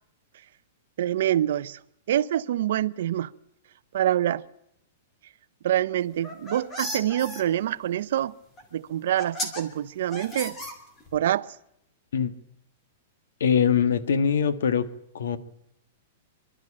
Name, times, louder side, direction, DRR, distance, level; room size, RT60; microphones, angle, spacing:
voice 1, 1.0-1.8 2.1-3.3 3.9-4.4 5.6-8.3 8.7-10.6 11.1-11.5, right 12 dB, 60° right, 0.7 m, -26 dB
sound 1, 6.1-7.4 8.6-8.7 9.2-9.6 10.1-11.2, equal, 15° left, 2.6 m, -34 dB
voice 2, 13.4-14.9 15.1-15.4, left 7 dB, 85° left, 1.6 m, -22 dB
25.5 x 12.5 x 8.7 m
supercardioid pair, 175°, 0 cm